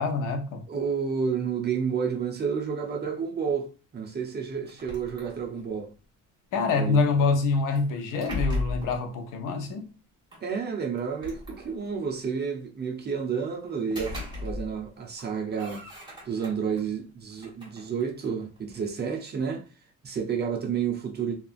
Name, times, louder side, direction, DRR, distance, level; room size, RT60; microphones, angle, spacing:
voice 1, 0.0-0.6 6.5-9.9, left 4 dB, 75° left, 0.7 m, -26 dB
voice 2, 0.7-3.7 3.9-5.9 6.7-7.0 10.4-14.1 14.4-15.8 16.3-19.6 20.0-21.3, right 6 dB, 30° right, 0.6 m, -30 dB
sound 1, 4.7-5.8 7.8-9.1 10.3-10.4 11.0-12.1 13.7-14.9 15.2-16.8 17.3-18.9, left 2 dB, 15° right, 1.2 m, -37 dB
2.8 x 2.4 x 2.4 m
cardioid pair, 110°, 32 cm